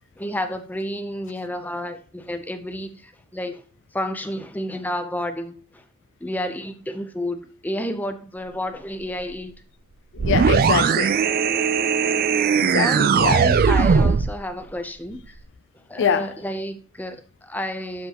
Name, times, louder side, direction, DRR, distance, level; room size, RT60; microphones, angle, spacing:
voice 1, 0.2-3.6 3.9-5.8 6.2-9.5 11.5-11.6 12.7-15.3 15.9-18.1, left 1 dB, 5° left, 0.6 m, -30 dB
voice 2, 10.1-11.2 12.6-13.4 16.0-16.3, left 7 dB, 55° left, 0.4 m, -24 dB
sound 1, 10.2-14.4, right 6 dB, 40° right, 0.3 m, -19 dB
12.0 x 5.4 x 2.9 m
head